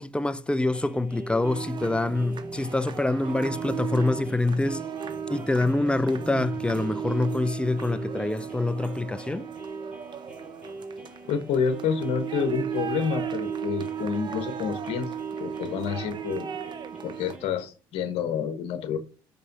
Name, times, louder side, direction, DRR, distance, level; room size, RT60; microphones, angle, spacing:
voice 1, 0.0-4.8 5.3-9.5, left 2 dB, 10° left, 0.7 m, -26 dB
sound 1, 0.6-17.6, right 2 dB, 10° right, 3.6 m, -43 dB
sound 2, 1.4-17.4, right 8 dB, 45° right, 0.9 m, -35 dB
voice 2, 11.3-15.1 15.4-16.5 17.0-19.0, left 6 dB, 65° left, 1.3 m, -28 dB
5.6 x 5.4 x 5.4 m
supercardioid pair, 70°, 11 cm